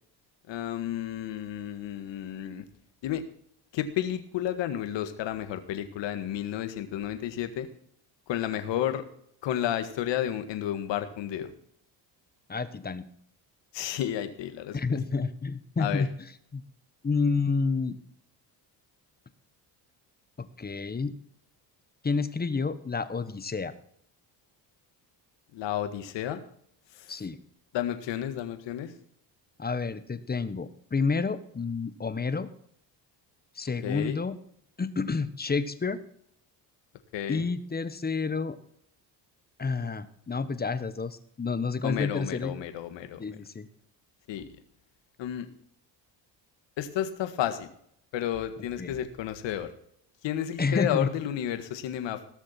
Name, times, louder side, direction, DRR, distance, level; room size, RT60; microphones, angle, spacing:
voice 1, 0.5-2.6 3.0-3.2 3.7-7.7 8.3-9.0 9.4-11.5 13.7-15.0 15.8-16.0 25.5-26.4 26.9-27.2 27.7-28.9 33.8-34.2 37.1-37.4 41.8-43.2 44.3-44.4 45.2-45.5 46.8-47.7 48.1-49.7 50.2-52.2, left 11 dB, 80° left, 9 dB, 1.8 m, -32 dB
voice 2, 12.5-13.1 14.7-16.1 16.5-16.6 17.0-18.0 20.4-21.2 22.0-23.7 27.1-27.4 29.6-32.5 33.6-34.4 34.8-36.0 37.3-38.6 39.6-42.6 43.2-43.7 48.8-48.9 50.6-51.1, left 4 dB, 20° left, 12 dB, 1.2 m, -29 dB
18.0 x 6.6 x 5.8 m, 0.68 s
cardioid pair, 105°, 43 cm